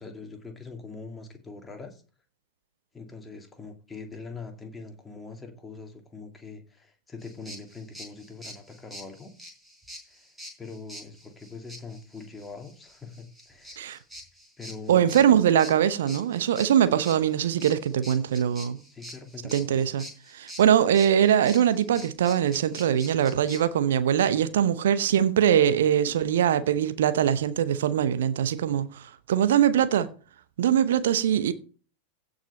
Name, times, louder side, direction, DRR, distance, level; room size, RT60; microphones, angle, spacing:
voice 1, 0.0-2.0 2.9-9.3 10.0-10.3 10.6-13.8 14.6-15.4 18.9-19.9, left 4 dB, 10° left, 2.4 m, -43 dB
sound 1, 7.2-23.6, equal, 5° right, 3.9 m, -45 dB
voice 2, 14.9-18.8 19.5-20.0 20.3-30.1 30.6-31.5, right 9 dB, 60° right, 0.8 m, -22 dB
16.0 x 5.4 x 4.3 m
figure-of-eight pair, 90°, 0 cm